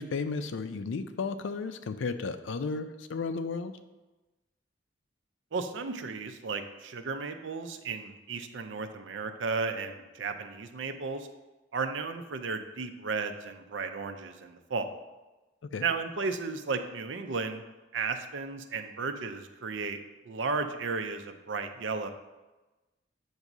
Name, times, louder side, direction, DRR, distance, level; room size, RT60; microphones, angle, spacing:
voice 1, 0.0-3.7 15.7-15.8, left 4 dB, 90° left, 10 dB, 0.5 m, -33 dB
voice 2, 5.5-11.3 11.7-15.0 15.8-17.6 17.9-20.0 20.2-22.1, right 4 dB, 75° right, 7 dB, 0.5 m, -34 dB
7.9 x 2.7 x 6.0 m, 1.1 s
head